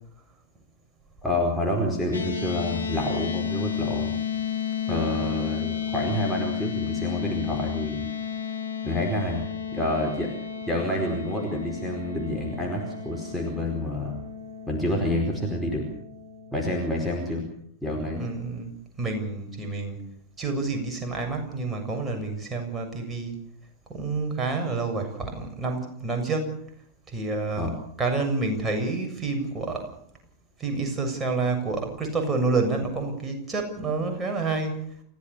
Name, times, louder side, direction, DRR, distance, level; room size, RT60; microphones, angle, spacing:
voice 1, 1.2-4.2 4.9-8.1 8.8-9.4 9.7-10.3 10.7-14.2 14.7-15.9 16.5-17.4 17.8-18.2 27.6-27.7, left 1 dB, ahead, -1 dB, 4.8 m, -28 dB
sound 1, 2.1-16.5, left 8 dB, 75° left, 2.8 m, -32 dB
voice 2, 18.2-18.7 19.0-20.0 20.4-23.3 23.9-26.6 27.1-27.7 28.0-29.9 30.6-34.8, right 3 dB, 15° right, 3 dB, 6.9 m, -28 dB
29.5 x 16.0 x 7.0 m, 0.66 s
figure-of-eight pair, 90°, 0 cm